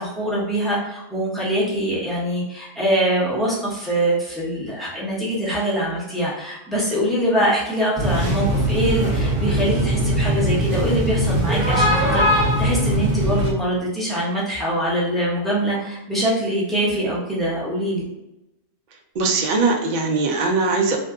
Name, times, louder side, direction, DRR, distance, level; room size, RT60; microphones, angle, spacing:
voice 1, 0.0-18.0, right 1 dB, ahead, -7 dB, 0.6 m, -23 dB
sound 1, 8.0-13.5, equal, 45° right, 1.0 m, -20 dB
voice 2, 19.2-21.0, right 3 dB, 90° right, 1 dB, 0.4 m, -20 dB
2.6 x 2.3 x 3.6 m, 0.90 s
omnidirectional pair, 1.5 m